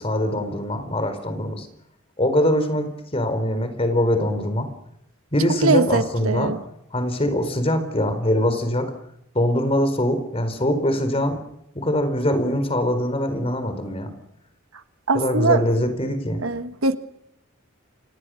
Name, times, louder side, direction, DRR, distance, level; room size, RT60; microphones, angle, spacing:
voice 1, 0.0-1.7 2.2-4.7 5.3-6.6 6.9-8.9 9.3-11.4 11.7-14.1 15.1-16.4, left 1 dB, 30° left, 9 dB, 4.4 m, -23 dB
voice 2, 5.6-6.6 15.1-15.6 16.4-17.0, right 3 dB, 75° right, 9 dB, 1.5 m, -21 dB
30.0 x 26.5 x 6.5 m, 0.80 s
head